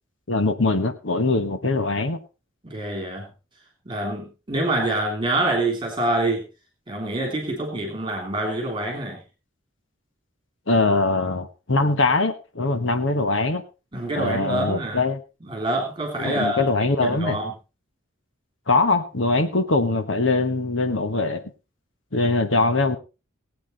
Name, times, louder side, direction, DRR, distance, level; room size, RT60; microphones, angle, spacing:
voice 1, 0.3-2.2 10.7-13.6 14.1-15.2 16.2-17.4 18.7-21.4 22.1-23.0, left 3 dB, 65° left, 9 dB, 1.4 m, -22 dB
voice 2, 2.6-3.3 3.9-6.4 6.9-9.2 13.9-15.0 15.5-16.7 17.0-17.5, right 1 dB, 25° right, 2 dB, 3.1 m, -26 dB
19.5 x 8.6 x 4.1 m, 0.31 s
head